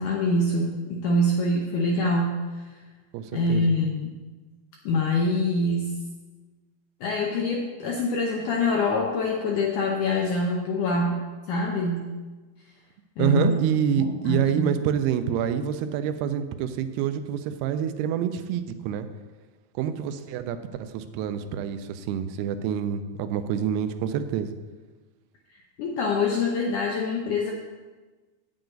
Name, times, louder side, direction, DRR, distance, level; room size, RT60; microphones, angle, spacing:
voice 1, 0.0-2.6 3.3-4.1 4.8-6.0 7.0-11.2 11.5-12.1 13.2-13.6 14.0-14.7 25.5-27.5, left 2 dB, 80° left, 0 dB, 1.8 m, -25 dB
voice 2, 3.1-3.8 13.2-19.1 19.8-24.6, right 8 dB, 90° right, 10 dB, 2.6 m, -27 dB
8.9 x 8.0 x 3.9 m, 1.3 s
omnidirectional pair, 4.5 m